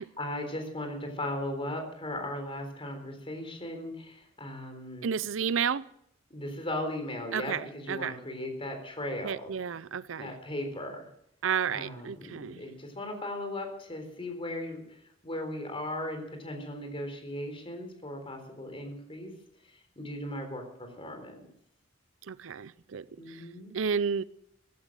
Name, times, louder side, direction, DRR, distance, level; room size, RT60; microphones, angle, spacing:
voice 1, 0.0-5.1 6.3-9.5 10.2-11.1 11.7-19.3 19.7-21.4 23.2-23.8, left 1 dB, 30° left, 3.8 m, -37 dB
voice 2, 5.0-5.8 7.3-8.1 9.2-10.3 11.4-12.6 22.3-23.4 23.7-24.2, right 7 dB, 75° right, 0.5 m, -31 dB
15.5 x 12.0 x 7.5 m
head